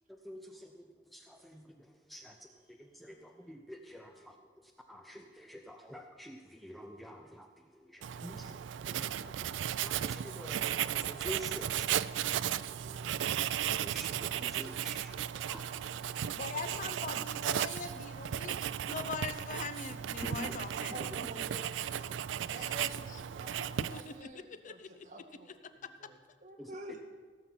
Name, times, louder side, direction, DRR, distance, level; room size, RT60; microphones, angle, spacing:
voice 1, 0.2-0.7 1.2-1.8 2.1-2.4 2.7-4.1 4.9-7.5 7.8-9.5 9.8-16.4 17.2-17.3 19.0-19.1 20.2-20.6 26.6-26.7, equal, ahead, 3 dB, 0.6 m, -48 dB
Writing, 8.0-24.2, right 10 dB, 80° right, 0.3 m, -35 dB
voice 2, 16.3-21.1 22.5-22.8 23.9-24.9 25.8-25.9, left 5 dB, 45° left, 11 dB, 0.6 m, -42 dB
voice 3, 20.9-22.1 22.4-24.8 25.1-27.0, right 1 dB, 45° right, 1 dB, 1.6 m, -48 dB
17.0 x 7.1 x 6.0 m, 1.4 s
head